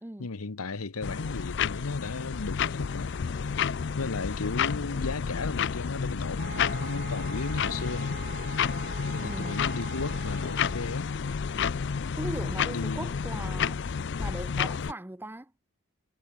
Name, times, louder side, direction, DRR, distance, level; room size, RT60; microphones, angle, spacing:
voice 1, 0.2-3.1 4.0-8.2 9.1-11.1 12.7-13.1, left 3 dB, 85° left, 1.0 m, -35 dB
sound 1, 1.0-14.9, left 6 dB, 55° left, 0.4 m, -30 dB
sound 2, 6.4-11.1, right 5 dB, 40° right, 1.1 m, -43 dB
voice 2, 9.2-9.8 12.2-13.8 14.2-15.5, right 1 dB, 10° right, 0.6 m, -39 dB
head